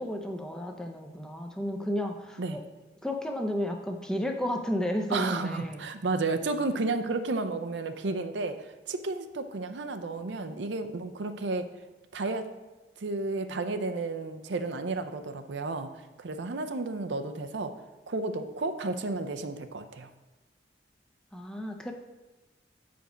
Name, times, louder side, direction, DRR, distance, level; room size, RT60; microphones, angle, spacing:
voice 1, 0.0-2.6 3.0-5.9 21.3-21.9, equal, 5° left, 3 dB, 0.6 m, -32 dB
voice 2, 5.1-11.7 12.1-12.5 13.0-15.9 16.2-17.7 18.1-20.1, right 3 dB, 75° right, 8 dB, 0.6 m, -32 dB
8.0 x 5.1 x 5.0 m, 1.1 s
head